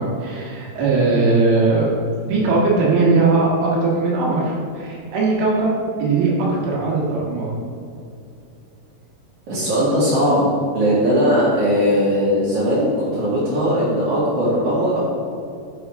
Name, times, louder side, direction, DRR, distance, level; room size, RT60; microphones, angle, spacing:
voice 1, 0.0-1.9 2.3-5.7 6.0-7.5, right 3 dB, 75° right, -5 dB, 4.1 m, -19 dB
voice 2, 9.5-15.0, equal, 50° right, -11 dB, 2.6 m, -19 dB
13.0 x 6.8 x 3.6 m, 2.5 s
omnidirectional pair, 5.9 m